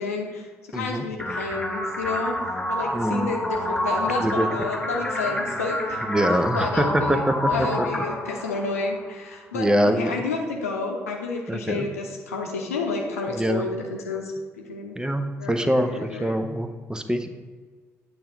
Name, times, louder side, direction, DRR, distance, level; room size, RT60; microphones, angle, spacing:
voice 1, 0.0-2.4 2.6-15.0 15.4-16.3, left 3 dB, 80° left, 1 dB, 0.8 m, -30 dB
voice 2, 0.7-1.0 2.9-3.3 4.2-4.5 6.1-7.9 9.5-10.1 11.5-11.9 13.3-13.7 15.0-17.3, equal, 10° right, 8 dB, 0.7 m, -24 dB
sound 1, 1.2-9.2, left 1 dB, 10° left, 1.7 m, -28 dB
8.7 x 3.4 x 6.5 m, 1.5 s
figure-of-eight pair, 40°, 8 cm